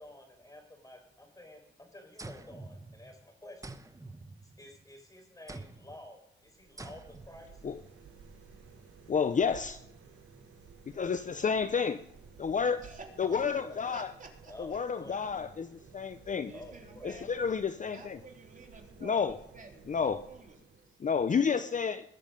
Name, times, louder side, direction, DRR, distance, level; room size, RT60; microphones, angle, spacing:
voice 1, 0.0-3.8 4.6-7.6 13.2-13.8 14.5-15.2 16.5-17.2, left 1 dB, 15° left, 4 dB, 4.7 m, -51 dB
sound 1, 2.2-3.2 3.6-4.9 5.5-6.0 6.8-7.4, right 2 dB, 15° right, 1.0 m, -47 dB
sound 2, 6.4-21.1, right 5 dB, 85° right, 4.1 m, -55 dB
voice 2, 9.1-9.8 10.9-12.0 12.4-12.8 13.2-14.1 14.6-15.7 15.9-16.5 17.0-18.2 19.0-19.4 19.9-20.2 21.0-22.0, left 6 dB, 35° left, 11 dB, 0.6 m, -30 dB
voice 3, 12.8-13.5 13.8-14.8 15.3-15.6 16.5-17.3 17.8-21.0 21.3-21.4, right 4 dB, 40° right, 1 dB, 3.4 m, -51 dB
21.0 x 7.5 x 5.2 m, 0.78 s
cardioid pair, 85°, 21 cm